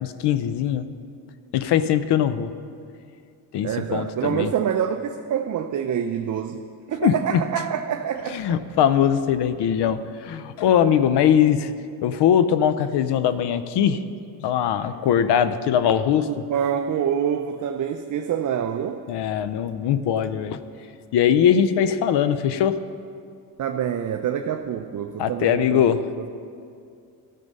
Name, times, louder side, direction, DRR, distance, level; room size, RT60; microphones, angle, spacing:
voice 1, 0.0-0.9 1.5-2.5 3.5-4.5 7.0-7.4 8.3-11.7 12.0-14.0 14.4-16.3 19.1-20.6 21.1-22.8 25.2-26.0, left 9 dB, 75° left, 12 dB, 0.6 m, -21 dB
voice 2, 3.6-6.6 6.9-8.4 16.3-19.0 23.6-25.9, right 8 dB, 45° right, 6 dB, 0.5 m, -26 dB
13.0 x 6.8 x 5.3 m, 2.4 s
cardioid pair, 90°, 41 cm